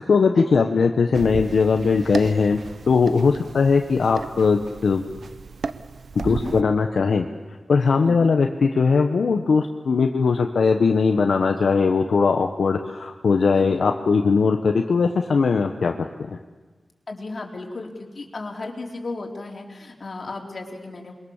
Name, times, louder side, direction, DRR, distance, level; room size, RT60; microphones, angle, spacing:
voice 1, 0.0-2.6 2.9-5.0 6.1-7.3 7.7-15.9 16.3-16.4, left 5 dB, 75° left, 4 dB, 1.3 m, -20 dB
sound 1, 1.1-6.6, right 5 dB, 75° right, 0.9 m, -35 dB
voice 2, 17.1-17.9 18.1-21.1, left 3 dB, 50° left, 0 dB, 4.3 m, -34 dB
28.0 x 22.5 x 7.4 m, 1.3 s
wide cardioid pair, 80°, 0 cm